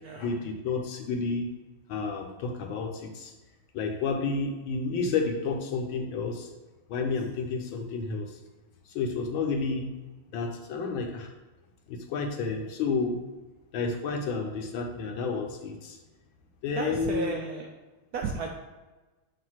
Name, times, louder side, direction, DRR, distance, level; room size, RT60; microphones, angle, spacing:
voice 1, 0.2-1.5 1.9-3.3 3.7-6.5 6.9-8.4 8.9-9.9 10.3-11.3 11.9-13.2 13.7-16.0 16.6-17.4, left 4 dB, 75° left, 3 dB, 1.6 m, -30 dB
voice 2, 16.8-17.7 18.1-18.5, right 4 dB, 70° right, 1 dB, 0.9 m, -33 dB
7.6 x 2.7 x 5.7 m, 1.2 s
omnidirectional pair, 2.2 m